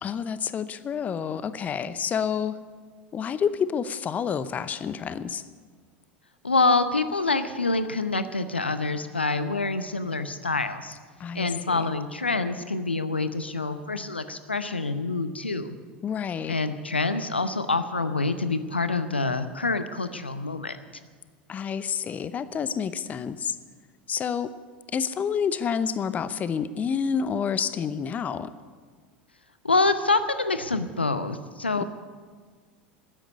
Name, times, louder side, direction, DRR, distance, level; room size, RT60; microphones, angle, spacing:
voice 1, 0.0-2.6 3.1-5.4 11.2-11.9 16.0-16.5 21.5-23.6 24.1-24.5 24.9-28.5, left 7 dB, 25° left, 15 dB, 0.7 m, -29 dB
voice 2, 6.4-11.0 11.3-15.8 16.5-20.8 29.6-31.8, left 3 dB, 85° left, 11 dB, 0.8 m, -26 dB
13.0 x 10.0 x 9.6 m, 1.5 s
figure-of-eight pair, 80°, 6 cm